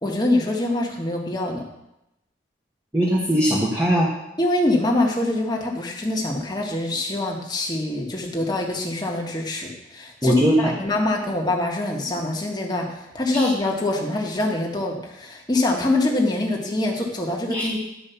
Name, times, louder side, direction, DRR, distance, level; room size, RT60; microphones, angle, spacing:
voice 1, 0.0-1.6 4.4-17.8, left 2 dB, 20° left, -1 dB, 1.6 m, -24 dB
voice 2, 2.9-4.1 10.2-10.7 13.3-13.5 17.5-17.7, equal, 15° right, -3 dB, 1.3 m, -20 dB
11.0 x 5.2 x 7.0 m, 0.89 s
head